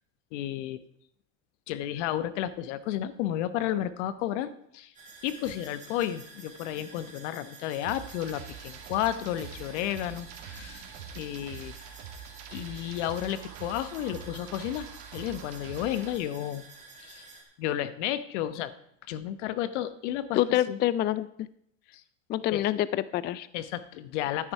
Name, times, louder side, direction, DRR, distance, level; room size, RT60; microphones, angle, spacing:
voice 1, 0.3-0.8 1.7-4.9 5.2-10.8 11.1-11.7 12.5-14.9 15.1-16.7 17.0-17.3 17.6-18.7 19.1-20.8 21.9-22.0 22.5-22.7 23.5-24.5, left 12 dB, 75° left, 14 dB, 1.0 m, -32 dB
sound 1, 4.9-17.4, right 3 dB, 20° right, 3.6 m, -50 dB
sound 2, 7.8-16.2, right 8 dB, 70° right, 2.4 m, -45 dB
voice 2, 20.3-21.3 22.3-23.5, left 13 dB, 30° left, 17 dB, 0.4 m, -26 dB
12.5 x 9.8 x 4.7 m, 0.71 s
supercardioid pair, 115°, 36 cm